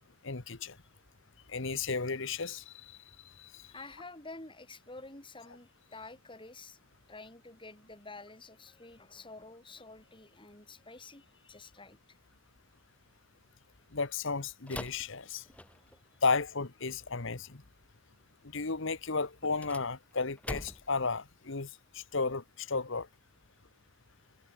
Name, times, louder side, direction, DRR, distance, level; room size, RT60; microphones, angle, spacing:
voice 1, 0.2-0.7 1.5-2.9 3.4-3.6 13.9-15.4 16.2-17.6 18.5-21.7 21.9-23.1, left 4 dB, 60° left, 1.3 m, -33 dB
voice 2, 3.7-6.8 7.1-12.2 16.1-16.2, left 3 dB, 25° left, 5.7 m, -49 dB
sound 1, 14.7-16.1 19.4-21.0, left 1 dB, 5° left, 2.1 m, -44 dB
head